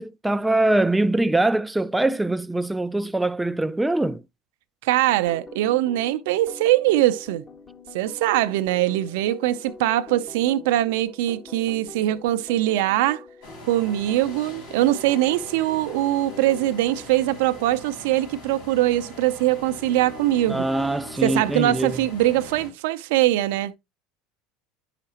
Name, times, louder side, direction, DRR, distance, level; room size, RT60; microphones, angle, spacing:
voice 1, 0.0-4.2 20.5-22.0, right 2 dB, 10° right, 0.4 m, -23 dB
voice 2, 4.8-7.4 7.9-13.2 13.6-20.7 21.2-23.7, right 14 dB, 75° right, 0.5 m, -22 dB
sound 1, 5.1-17.1, left 3 dB, 30° left, 1.3 m, -44 dB
sound 2, 13.4-22.7, left 2 dB, 90° left, 5.3 m, -42 dB
9.6 x 5.7 x 2.8 m
supercardioid pair, 95°, 0 cm